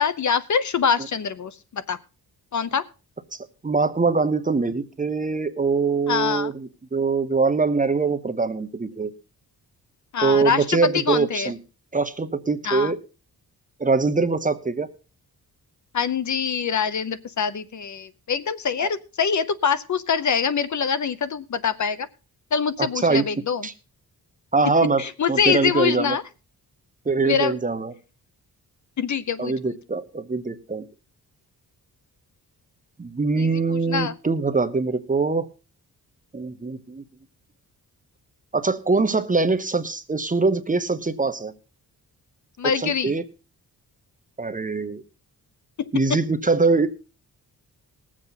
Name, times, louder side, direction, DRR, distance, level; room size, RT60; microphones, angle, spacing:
voice 1, 0.0-2.0 2.5-2.9 6.1-6.5 10.1-11.5 12.6-12.9 15.9-22.1 22.5-23.7 25.0-26.2 27.2-27.6 29.0-29.7 33.4-34.1 42.6-43.1 45.8-46.2, left 6 dB, 50° left, 15 dB, 0.7 m, -24 dB
voice 2, 3.3-9.1 10.2-11.6 11.9-13.0 13.8-14.9 18.8-18.9 22.8-23.2 23.6-23.7 24.5-26.2 27.1-27.9 29.4-30.8 33.0-35.5 36.3-37.0 38.5-41.5 42.6-43.2 44.4-45.0 45.9-46.9, right 4 dB, 20° right, 10 dB, 0.9 m, -23 dB
20.0 x 7.5 x 4.0 m, 0.33 s
wide cardioid pair, 130°, 38 cm